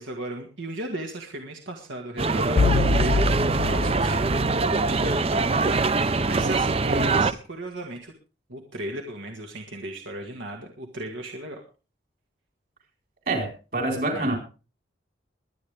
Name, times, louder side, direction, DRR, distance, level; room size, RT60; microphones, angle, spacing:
voice 1, 0.0-4.3 4.6-8.1 8.5-11.6 14.1-14.3, right 1 dB, 80° right, 2 dB, 2.0 m, -36 dB
sound 1, 2.2-7.3, right 3 dB, 30° right, 0.6 m, -23 dB
sound 2, 2.6-5.4, left 3 dB, 65° left, 0.6 m, -25 dB
voice 2, 13.3-14.4, right 2 dB, 50° right, 2 dB, 4.6 m, -26 dB
22.0 x 9.7 x 3.6 m, 0.34 s
head